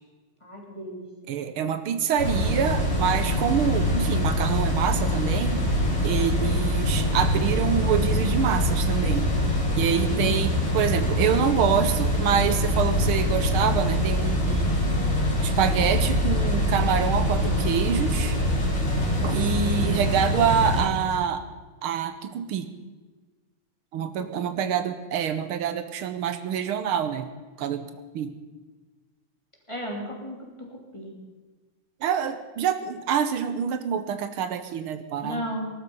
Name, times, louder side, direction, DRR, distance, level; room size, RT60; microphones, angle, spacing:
voice 1, 0.4-1.3 10.1-10.7 18.8-19.5 24.2-24.3 24.6-24.8 29.7-31.1 35.2-35.7, equal, 15° left, -1 dB, 3.0 m, -36 dB
voice 2, 1.3-5.7 6.0-9.3 9.8-14.8 15.4-18.4 19.2-21.5 21.8-22.7 23.9-27.3 27.6-27.9 28.1-28.3 32.0-35.4, right 8 dB, 80° right, 10 dB, 1.8 m, -26 dB
sound 1, 2.2-20.8, left 1 dB, 45° left, 5.2 m, -24 dB
19.5 x 12.5 x 5.5 m, 1.3 s
omnidirectional pair, 2.3 m